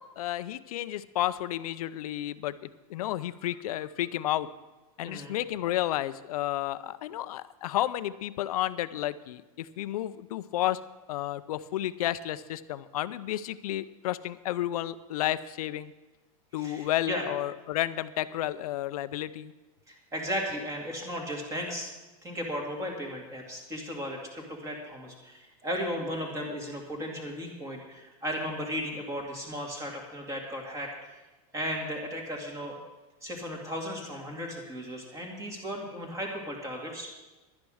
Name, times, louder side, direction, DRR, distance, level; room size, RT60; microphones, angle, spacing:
voice 1, 0.0-4.5 5.0-10.8 11.1-15.9 16.5-19.5, left 13 dB, 85° left, 15 dB, 0.6 m, -32 dB
voice 2, 5.0-5.4 16.6-17.2 19.9-21.9 22.2-31.2 31.5-32.8 33.2-37.1, equal, 15° right, 1 dB, 2.4 m, -35 dB
11.5 x 9.6 x 6.4 m, 1.1 s
supercardioid pair, 155°, 19 cm